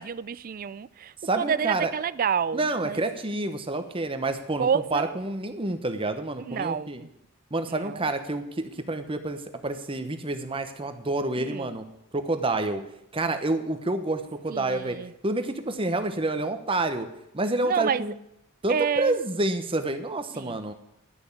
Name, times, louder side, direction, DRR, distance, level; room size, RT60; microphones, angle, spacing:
voice 1, 0.0-3.0 4.6-5.1 6.4-7.1 7.7-8.0 11.4-11.6 14.5-15.1 17.6-18.0 18.7-19.1 20.3-20.6, right 7 dB, 40° right, 0.3 m, -29 dB
voice 2, 1.2-1.9 2.5-7.0 7.5-11.8 12.1-12.8 13.1-15.0 15.2-17.1 17.3-18.1 18.6-20.7, right 2 dB, 25° right, 0.9 m, -28 dB
11.0 x 6.1 x 8.4 m
head